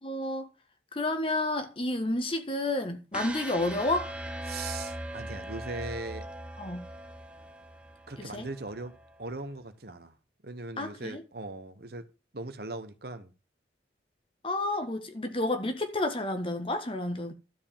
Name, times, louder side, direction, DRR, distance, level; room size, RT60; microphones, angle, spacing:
voice 1, 0.0-0.5 0.9-4.1 6.6-6.8 8.2-8.5 10.8-11.2 14.4-17.3, left 2 dB, 30° left, 1.4 m, -30 dB
sound 1, 3.1-9.2, right 1 dB, 5° right, 1.1 m, -40 dB
voice 2, 4.5-6.3 8.1-8.9 9.2-10.1 10.4-12.0 12.3-13.3, right 2 dB, 55° right, 1.2 m, -39 dB
12.5 x 4.8 x 7.4 m
head